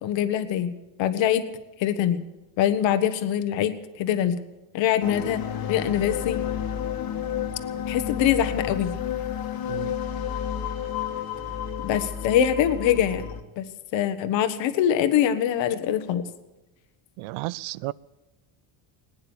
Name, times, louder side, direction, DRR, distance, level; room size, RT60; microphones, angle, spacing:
voice 1, 0.0-0.7 1.0-1.5 1.8-2.2 2.6-4.4 4.7-5.4 5.7-6.4 7.9-8.9 11.8-13.2 13.6-13.7 13.9-16.2, left 10 dB, 60° left, 1.4 m, -23 dB
sound 1, 5.0-13.4, left 9 dB, 45° left, 1.8 m, -31 dB
voice 2, 17.2-17.9, right 20 dB, 70° right, 0.6 m, -33 dB
20.5 x 9.7 x 7.2 m
cardioid pair, 110°, 50 cm